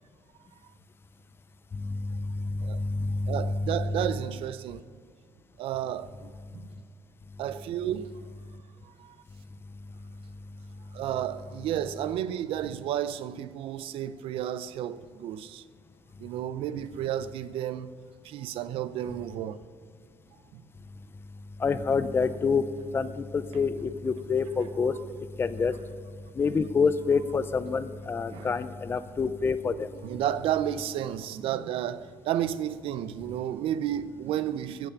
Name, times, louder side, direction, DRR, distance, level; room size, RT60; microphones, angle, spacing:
voice 1, 1.7-3.7 21.6-22.6 22.9-24.9 25.4-25.7 26.4-29.9, left 5 dB, 25° left, 0.5 m, -27 dB
voice 2, 3.3-4.9 5.6-6.7 7.4-8.1 8.8-9.2 10.9-15.6 16.2-17.9 18.2-19.6 20.5-20.6 28.3-28.5 30.0-34.9, right 11 dB, 75° right, 0.5 m, -32 dB
14.5 x 5.8 x 6.9 m
cardioid pair, 145°, 9 cm